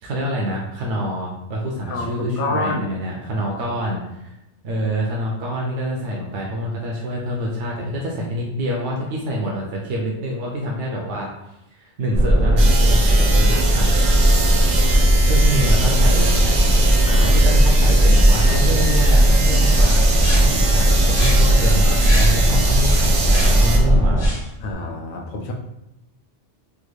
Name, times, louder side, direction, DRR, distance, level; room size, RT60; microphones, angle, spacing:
voice 1, 0.0-4.4 4.6-13.9 14.9-16.5 17.2-20.0 20.3-24.2, equal, 80° right, -2 dB, 0.9 m, -26 dB
voice 2, 1.9-2.8 17.0-17.4 24.6-25.5, left 3 dB, 55° left, 1 dB, 0.7 m, -27 dB
sound 1, 12.1-24.3, right 1 dB, 10° right, 0.5 m, -16 dB
sound 2, 12.6-23.8, right 3 dB, 55° right, 0.6 m, -26 dB
sound 3, 19.9-24.7, left 1 dB, 90° left, 1.4 m, -31 dB
3.5 x 2.3 x 3.1 m, 0.88 s
omnidirectional pair, 1.2 m